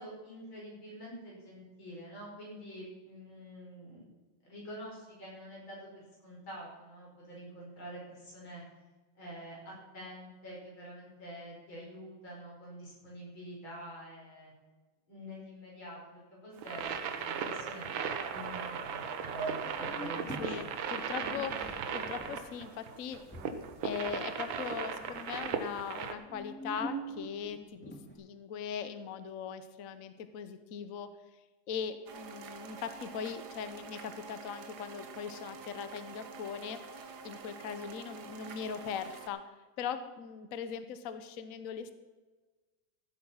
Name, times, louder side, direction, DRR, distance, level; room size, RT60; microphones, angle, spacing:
voice 1, 0.0-4.1 4.4-8.6 9.2-14.5 15.1-17.9 18.3-20.7 38.2-38.3, equal, 90° left, -4 dB, 5.9 m, -47 dB
sound 1, 16.6-26.1, right 6 dB, 85° right, 1.8 m, -37 dB
sound 2, 19.3-20.4 21.1-24.6 24.9-25.5 26.1-28.1, right 2 dB, 5° left, 2.3 m, -43 dB
voice 2, 20.4-23.2 23.8-27.9 28.2-31.1 31.7-39.4 39.8-41.9, left 7 dB, 55° left, 10 dB, 1.1 m, -40 dB
sound 3, 32.1-39.3, right 5 dB, 60° right, 1.6 m, -47 dB
15.5 x 8.3 x 5.6 m, 1.3 s
omnidirectional pair, 2.1 m